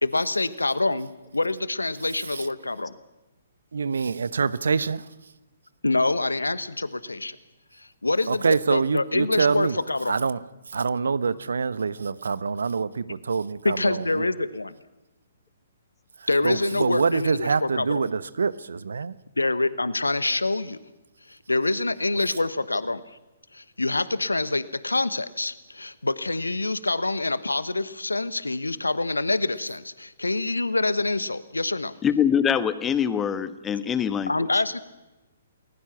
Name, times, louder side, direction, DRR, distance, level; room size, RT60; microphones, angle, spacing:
voice 1, 0.0-2.9 5.8-7.4 7.8-10.2 13.6-14.7 16.3-18.1 19.4-20.8 21.3-23.0 23.5-31.9 34.3-34.8, left 2 dB, 80° left, 1.2 m, -26 dB
voice 2, 3.7-5.0 8.3-9.8 10.1-10.4 10.7-14.3 16.4-19.1, right 5 dB, 65° right, 1.0 m, -25 dB
voice 3, 32.0-34.3, left 8 dB, 15° left, 1.4 m, -23 dB
29.0 x 20.5 x 6.0 m
figure-of-eight pair, 125°, 0 cm